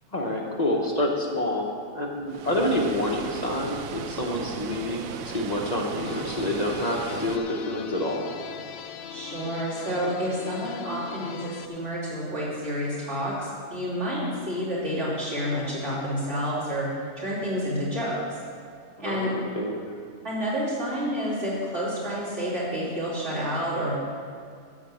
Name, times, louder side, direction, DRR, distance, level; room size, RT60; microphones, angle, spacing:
voice 1, 0.1-1.7 1.9-8.2 19.0-19.9, left 1 dB, 30° left, -1 dB, 1.0 m, -28 dB
Water, 2.3-7.4, right 8 dB, 70° right, 1.0 m, -37 dB
sound 1, 6.0-11.7, left 8 dB, 75° left, 1.0 m, -40 dB
voice 2, 9.1-16.9 17.2-18.4 19.0-19.3 20.2-23.9, equal, 50° right, -11 dB, 3.4 m, -29 dB
12.5 x 4.2 x 7.8 m, 2.2 s
omnidirectional pair, 1.5 m